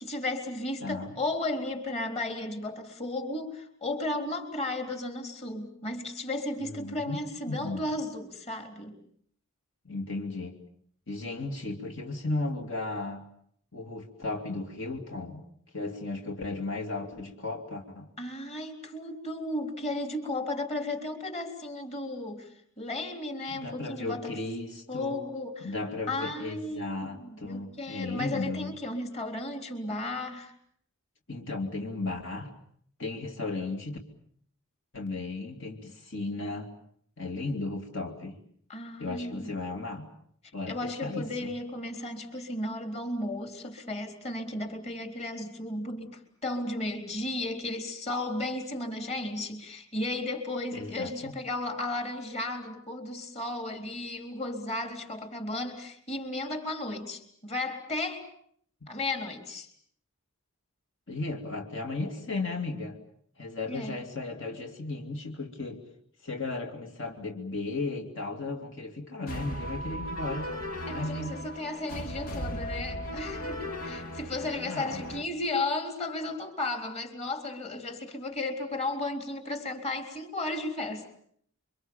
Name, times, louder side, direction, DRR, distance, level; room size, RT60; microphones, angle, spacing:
voice 1, 0.0-9.0 18.2-24.4 24.9-25.7 26.1-30.5 38.7-39.5 40.7-58.3 58.9-59.7 63.7-63.9 70.9-81.0, left 2 dB, 30° left, 4 dB, 3.8 m, -34 dB
voice 2, 0.8-1.2 6.6-7.2 7.5-7.9 9.8-10.5 11.1-13.2 13.7-15.4 15.7-18.1 23.5-25.2 25.6-28.7 31.3-32.5 33.0-34.0 34.9-36.7 37.2-38.4 39.0-40.1 40.5-41.5 50.7-51.4 58.8-58.9 61.1-63.0 63.4-65.8 66.2-70.5 70.9-71.4 74.6-75.0, left 2 dB, 55° left, 2 dB, 2.8 m, -35 dB
sound 1, 69.3-75.2, equal, 80° left, 2.7 m, -37 dB
29.0 x 24.5 x 7.2 m, 0.65 s
head